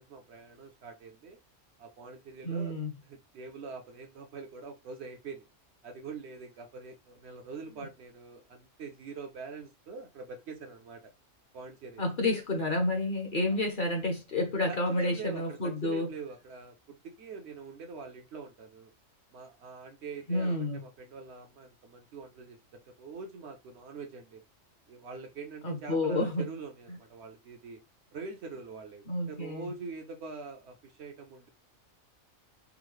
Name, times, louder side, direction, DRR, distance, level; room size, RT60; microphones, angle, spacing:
voice 1, 0.0-1.4 1.8-2.8 3.0-5.4 5.8-11.1 11.5-12.1 14.7-18.9 19.3-24.4 24.9-27.8 28.1-31.5, right 4 dB, 65° right, 0.8 m, -44 dB
voice 2, 2.4-2.9 12.0-16.1 20.3-20.8 25.6-26.4 29.1-29.7, left 2 dB, 50° left, 0.8 m, -30 dB
3.6 x 2.0 x 3.1 m
omnidirectional pair, 1.4 m